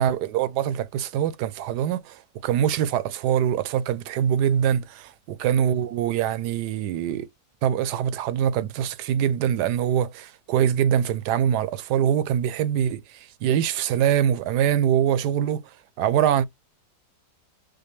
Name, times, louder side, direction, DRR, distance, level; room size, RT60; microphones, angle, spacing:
voice 1, 0.0-5.1 5.4-7.3 7.6-13.0 13.4-15.6 16.0-16.5, right 9 dB, 80° right, 1.1 m, -23 dB
5.0 x 2.1 x 3.0 m
omnidirectional pair, 1.8 m